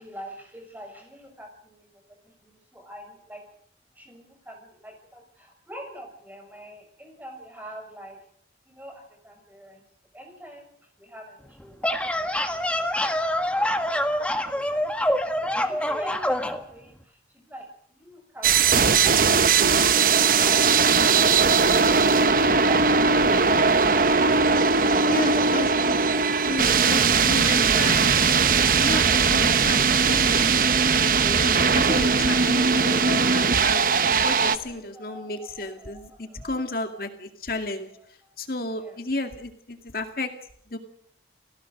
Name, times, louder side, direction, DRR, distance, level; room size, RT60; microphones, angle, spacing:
voice 1, 0.0-3.4 3.9-8.2 8.7-9.8 10.1-15.1 15.4-19.9 34.5-37.0 37.9-38.3 38.6-39.0, equal, 10° right, 3 dB, 6.5 m, -45 dB
sound 1, 11.6-16.6, left 1 dB, 5° left, 1.6 m, -25 dB
sound 2, 18.4-34.6, right 5 dB, 50° right, 1.1 m, -19 dB
voice 2, 25.1-26.0 26.5-28.1 28.8-33.8 34.2-37.9 38.4-40.3 40.7-40.8, left 2 dB, 55° left, 6 dB, 2.2 m, -32 dB
30.0 x 18.0 x 6.6 m, 0.67 s
head